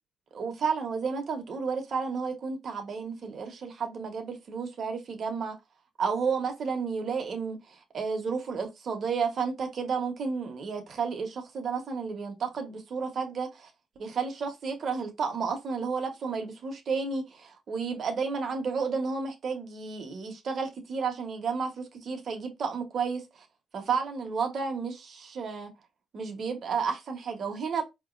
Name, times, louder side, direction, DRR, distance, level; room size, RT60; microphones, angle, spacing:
voice 1, 0.3-5.5 6.0-13.7 14.0-23.4 23.7-25.7 26.1-27.8, right 5 dB, 55° right, 1.3 m, -32 dB
4.4 x 3.0 x 2.6 m
cardioid pair, 90°, 0 cm